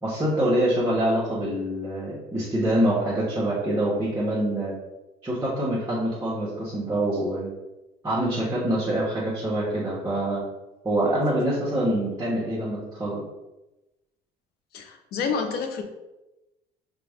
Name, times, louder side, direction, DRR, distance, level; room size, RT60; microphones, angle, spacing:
voice 1, 0.0-4.8 5.2-7.5 8.0-10.4 10.8-13.2, right 1 dB, 20° right, -10 dB, 1.2 m, -25 dB
voice 2, 14.7-15.8, left 5 dB, 70° left, 5 dB, 0.7 m, -28 dB
4.9 x 2.4 x 3.5 m, 1.0 s
cardioid pair, 110°, 17 cm